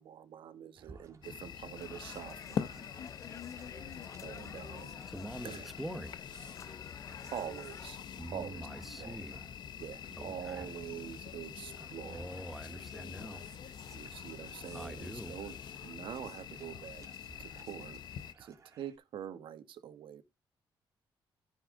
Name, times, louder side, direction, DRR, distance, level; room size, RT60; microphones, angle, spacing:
voice 1, 0.0-3.0 4.2-5.0 5.4-5.7 7.3-8.0 8.3-8.7 9.0-9.2 9.8-12.3 13.9-15.6 15.8-17.0 17.4-18.0 18.4-20.2, right 9 dB, 90° right, 1.4 m, -45 dB
sound 1, 0.8-19.0, right 4 dB, 40° right, 2.4 m, -60 dB
sound 2, 1.2-18.3, left 8 dB, 60° left, 0.8 m, -45 dB
sound 3, 1.8-7.9, left 7 dB, 35° left, 0.4 m, -53 dB
voice 2, 5.1-6.2 8.2-9.4 10.2-10.7 12.0-13.4 14.7-15.3, right 1 dB, ahead, 1.3 m, -44 dB
14.0 x 5.7 x 3.8 m
wide cardioid pair, 170°, 9 cm